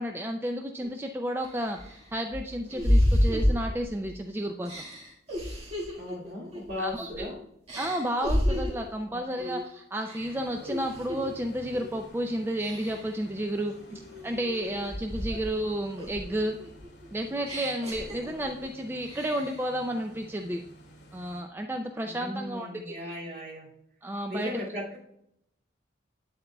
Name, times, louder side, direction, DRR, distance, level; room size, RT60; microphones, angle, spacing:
voice 1, 0.0-4.7 6.8-7.3 7.8-13.7 14.2-16.6 17.1-20.6 21.1-22.9 24.0-24.5, right 1 dB, 10° right, 4 dB, 0.3 m, -32 dB
sound 1, 0.8-0.9 1.4-4.2 4.6-7.3 7.7-8.9 9.4-9.7 10.0-11.3 11.7-12.1 12.6-13.2 13.7-15.6 16.0-18.7 19.0-19.7, equal, 35° right, 1.8 m, -30 dB
voice 2, 6.0-7.4 9.1-9.5 15.3-15.4 18.2-18.3 22.0-23.7 24.3-25.0, left 1 dB, 55° right, -4 dB, 2.4 m, -37 dB
sound 2, 10.2-21.4, equal, 80° left, 1.9 m, -51 dB
8.5 x 7.8 x 2.3 m, 0.75 s
head